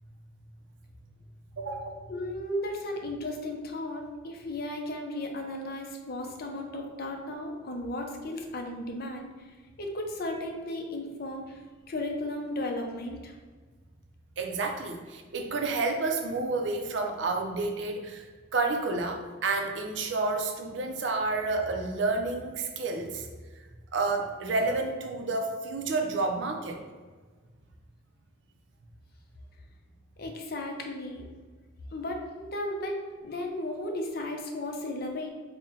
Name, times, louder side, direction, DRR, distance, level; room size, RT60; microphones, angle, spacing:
voice 1, 1.6-1.9 14.4-18.3 18.5-23.3 23.9-26.8, right 3 dB, 65° right, 3 dB, 0.5 m, -30 dB
voice 2, 2.1-9.5 9.8-11.6 11.9-13.3 30.2-31.3 31.9-35.3, left 1 dB, 50° left, 2 dB, 0.5 m, -35 dB
4.1 x 2.1 x 3.8 m, 1.4 s
head